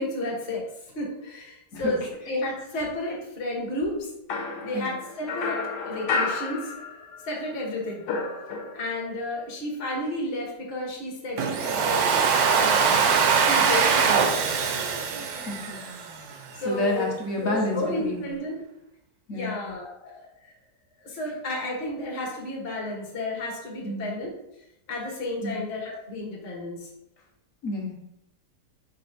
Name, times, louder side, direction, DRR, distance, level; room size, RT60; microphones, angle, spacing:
voice 1, 0.0-4.1 4.6-6.7 7.2-8.0 8.7-12.0 12.6-13.0 13.4-14.3 16.6-17.1 17.4-18.6 19.3-20.5 21.0-24.3 24.9-26.9, left 1 dB, 40° left, -3 dB, 1.1 m, -32 dB
sound 1, 4.3-7.3 7.6-9.1, left 4 dB, 90° left, 1.3 m, -31 dB
Domestic sounds home sounds, 11.4-16.3, right 6 dB, 70° right, 1.0 m, -22 dB
voice 2, 15.5-15.9 16.6-18.2 19.3-19.6 23.8-24.1 25.4-25.6 27.6-27.9, left 2 dB, 55° left, -1 dB, 1.3 m, -29 dB
4.8 x 4.3 x 2.6 m, 0.86 s
omnidirectional pair, 1.8 m